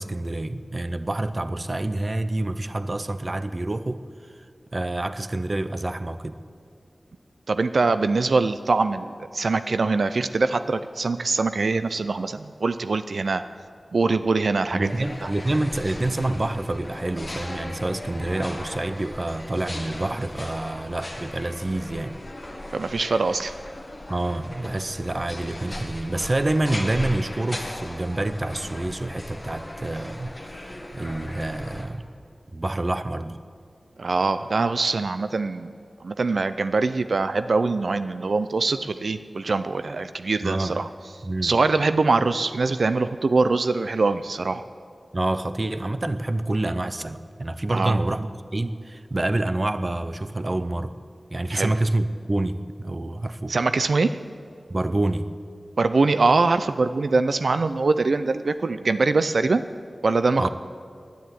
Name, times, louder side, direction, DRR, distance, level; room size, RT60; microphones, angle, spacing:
voice 1, 0.0-4.0 4.7-6.4 14.7-22.2 24.1-32.0 32.5-33.4 40.4-40.8 41.2-41.6 45.1-51.0 51.3-53.5 54.7-55.3 60.4-60.5, right 2 dB, 35° right, 12 dB, 0.6 m, -27 dB
voice 2, 7.5-13.4 13.9-14.9 15.2-15.3 22.7-23.5 34.0-35.7 36.0-40.9 41.4-44.6 47.7-48.0 51.5-51.7 53.5-54.1 55.8-59.6 60.0-60.5, right 3 dB, 80° right, 11 dB, 0.4 m, -23 dB
sound 1, 14.8-31.9, left 1 dB, 30° left, 1.7 m, -37 dB
10.0 x 10.0 x 9.3 m, 2.3 s
wide cardioid pair, 85°, 0 cm